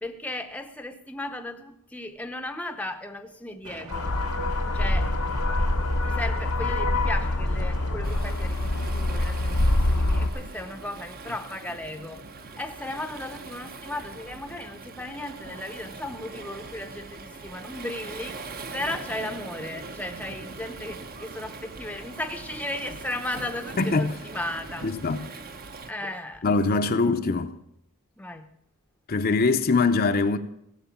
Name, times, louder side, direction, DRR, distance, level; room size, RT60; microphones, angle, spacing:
voice 1, 0.0-4.1 4.7-5.2 6.0-12.2 12.6-24.9 25.9-26.4 28.2-28.5, left 1 dB, 5° left, 0.7 m, -36 dB
sound 1, 3.6-8.0, right 1 dB, 85° right, 3.0 m, -43 dB
sound 2, 3.9-10.3, left 1 dB, 90° left, 1.1 m, -25 dB
Waves surf, 8.0-25.9, right 3 dB, 40° right, 0.8 m, -41 dB
voice 2, 23.8-24.1 24.8-25.3 26.4-27.5 29.1-30.4, left 3 dB, 40° left, 0.7 m, -23 dB
16.5 x 7.8 x 7.2 m
head